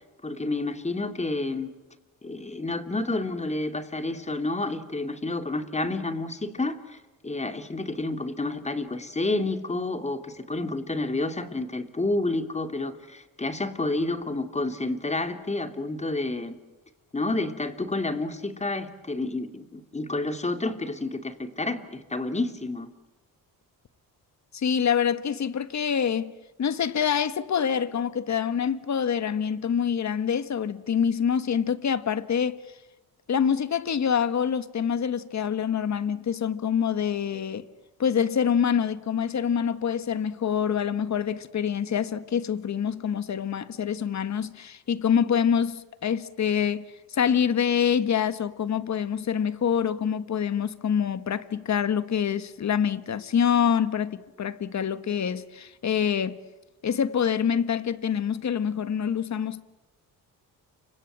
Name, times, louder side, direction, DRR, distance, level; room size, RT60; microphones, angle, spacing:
voice 1, 0.2-1.7 2.2-7.0 7.2-16.6 17.1-22.9, left 2 dB, 20° left, 2.8 m, -29 dB
voice 2, 24.5-32.6 33.3-37.6 38.0-56.4 56.8-59.6, left 8 dB, 50° left, 1.6 m, -26 dB
29.5 x 25.5 x 7.5 m
cardioid pair, 90°, 35 cm